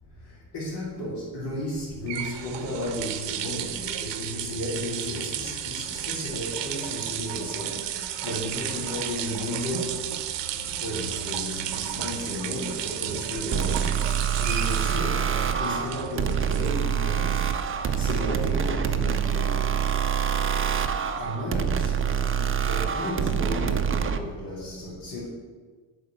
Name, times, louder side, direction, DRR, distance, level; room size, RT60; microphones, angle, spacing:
voice 1, 0.5-7.7 8.2-10.0 10.6-13.9 14.4-15.3 15.6-17.3 17.9-19.6 21.2-25.3, left 1 dB, 60° left, -8 dB, 2.7 m, -33 dB
sound 1, 1.7-18.8, right 10 dB, 70° right, 0.8 m, -34 dB
sound 2, 13.5-24.2, right 7 dB, 30° right, 0.6 m, -26 dB
7.0 x 4.6 x 6.9 m, 1.5 s
supercardioid pair, 80°, 44 cm